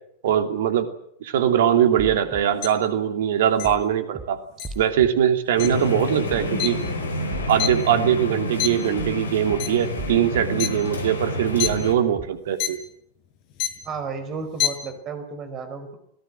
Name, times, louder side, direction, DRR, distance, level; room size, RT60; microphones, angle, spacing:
voice 1, 0.2-0.9 1.2-4.4 4.7-6.8 7.5-12.8, right 10 dB, 55° right, 8 dB, 2.9 m, -21 dB
sound 1, 2.0-2.4 3.6-3.8 4.1-4.3 4.6-5.1 6.3-6.5 6.8-6.9 7.3-7.8 9.0-9.2 9.5-9.6 10.0-10.4 11.6-11.8 12.1-12.3, right 2 dB, 15° right, 5.4 m, -36 dB
sound 2, 2.6-2.7 3.6-3.7 4.6-4.7 5.6-5.7 6.6-6.7 7.1-8.2 8.6-8.9 9.5-9.8 10.6-10.7 11.4-11.7 12.6-12.7 13.5-13.9 14.4-14.7, left 12 dB, 45° left, 5.4 m, -26 dB
sound 3, 5.6-11.9, left 1 dB, 70° left, 4.2 m, -29 dB
voice 2, 13.8-16.0, right 5 dB, 30° right, 9 dB, 5.2 m, -33 dB
26.5 x 19.0 x 7.6 m, 0.70 s
figure-of-eight pair, 90°, 0 cm